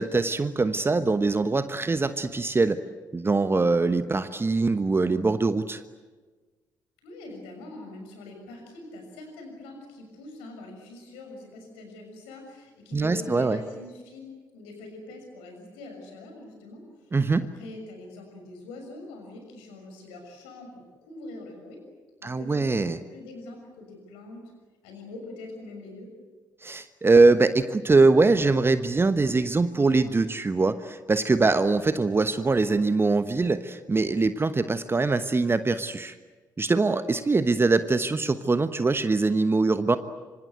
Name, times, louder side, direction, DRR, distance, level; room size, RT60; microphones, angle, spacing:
voice 1, 0.0-2.8 3.1-5.8 12.9-13.6 17.1-17.5 22.2-23.0 26.6-36.1 36.6-40.0, right 3 dB, 25° right, 12 dB, 1.2 m, -23 dB
voice 2, 7.0-21.8 22.2-24.4 24.8-26.1, left 2 dB, 65° left, 4 dB, 6.5 m, -43 dB
26.0 x 26.0 x 8.0 m, 1.3 s
figure-of-eight pair, 45°, 10 cm